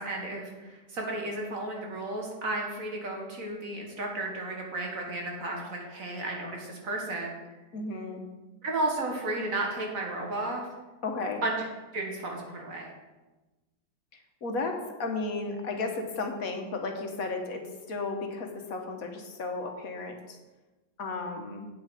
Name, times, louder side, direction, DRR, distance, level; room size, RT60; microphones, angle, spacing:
voice 1, 0.0-7.4 8.6-10.7 11.4-11.7 11.9-12.9, right 2 dB, 55° right, 0 dB, 2.0 m, -33 dB
voice 2, 7.7-8.2 11.0-11.4 14.4-20.4 21.0-21.7, left 3 dB, 60° left, 3 dB, 1.5 m, -34 dB
8.6 x 7.7 x 5.0 m, 1.2 s
omnidirectional pair, 1.8 m